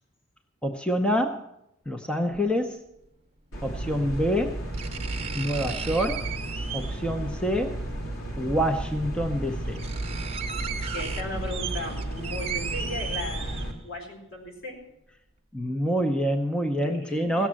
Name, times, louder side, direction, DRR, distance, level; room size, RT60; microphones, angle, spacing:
voice 1, 0.6-1.4 1.9-2.8 3.6-4.6 5.3-6.3 6.7-7.8 8.4-9.8 15.5-17.5, equal, 5° left, 5 dB, 0.7 m, -26 dB
sound 1, 2.3-2.4 3.9-4.0 4.7-7.1 8.5-8.6 9.2-9.3 9.5-14.0 14.4-14.5, right 7 dB, 30° right, 0.9 m, -36 dB
sound 2, 3.5-13.7, right 1 dB, 85° left, 2.7 m, -33 dB
voice 2, 10.8-14.8 16.8-17.5, left 1 dB, 70° left, 0 dB, 4.1 m, -37 dB
16.5 x 7.2 x 7.5 m, 0.85 s
head